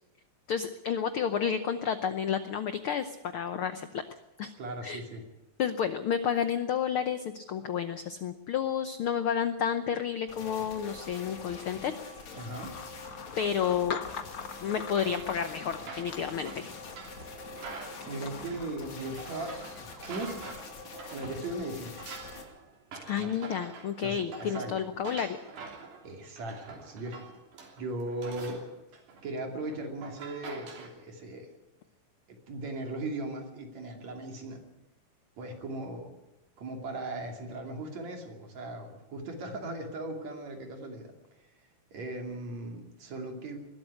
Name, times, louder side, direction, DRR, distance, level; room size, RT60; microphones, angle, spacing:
voice 1, 0.5-4.0 4.4-4.5 4.8-5.0 5.6-11.9 13.4-14.0 14.6-16.7 23.1-25.4, left 8 dB, 80° left, 10 dB, 1.2 m, -31 dB
voice 2, 4.6-5.2 12.3-12.7 17.2-17.3 18.0-20.7 21.1-22.0 23.2-23.3 24.0-24.7 26.0-27.2 27.8-28.6 29.2-31.5 32.3-34.6 35.4-36.1 36.6-41.1 41.9-43.6, right 2 dB, 60° right, 3 dB, 3.9 m, -38 dB
sound 1, 10.3-22.4, left 3 dB, 65° left, 3.8 m, -45 dB
sound 2, 12.5-20.4, left 6 dB, 50° left, 1.6 m, -45 dB
sound 3, 14.9-21.5 21.7-30.9, right 4 dB, 85° right, 4.7 m, -46 dB
20.5 x 13.0 x 9.8 m, 1.0 s
omnidirectional pair, 3.6 m